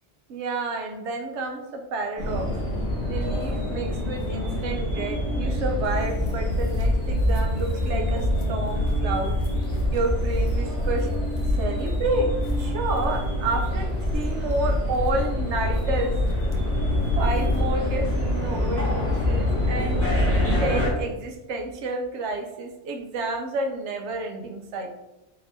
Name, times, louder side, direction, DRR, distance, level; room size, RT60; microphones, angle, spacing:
voice 1, 0.3-2.6 3.1-9.4 9.9-11.1 11.6-16.2 16.9-20.1 20.6-24.9, right 2 dB, 80° right, 3 dB, 1.0 m, -30 dB
sound 1, 2.2-20.9, left 1 dB, 10° left, 1.5 m, -26 dB
sound 2, 5.8-18.2, left 1 dB, 80° left, 1.1 m, -29 dB
4.2 x 4.2 x 2.6 m, 1.0 s
omnidirectional pair, 1.2 m